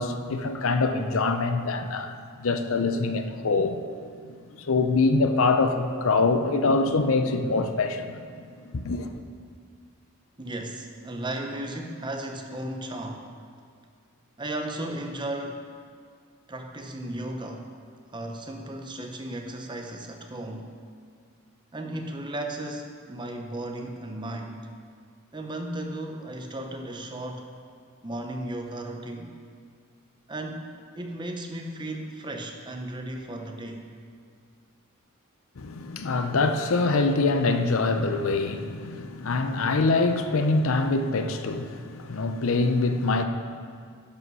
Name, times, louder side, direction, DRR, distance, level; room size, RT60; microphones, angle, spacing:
voice 1, 0.0-2.1 2.4-4.4 4.7-8.1 8.6-9.1 35.6-43.2, left 3 dB, 70° left, 0.6 m, -24 dB
voice 2, 10.4-13.3 14.4-15.6 16.5-17.7 18.1-20.7 21.7-24.7 25.3-27.5 28.0-29.3 30.3-33.9, right 1 dB, 20° right, 0.8 m, -35 dB
11.5 x 5.3 x 5.5 m
head